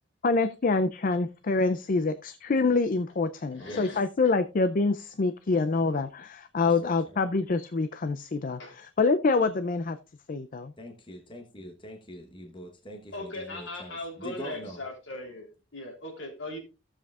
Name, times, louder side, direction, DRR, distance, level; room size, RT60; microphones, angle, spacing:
voice 1, 0.2-10.0 10.3-10.7, left 3 dB, 45° left, 0.4 m, -26 dB
voice 2, 3.5-4.0 8.6-8.8 13.1-15.4 15.7-16.6, left 2 dB, 75° left, 3.2 m, -39 dB
voice 3, 6.6-7.2 10.8-14.8, equal, 25° left, 1.1 m, -43 dB
15.0 x 7.4 x 2.4 m
head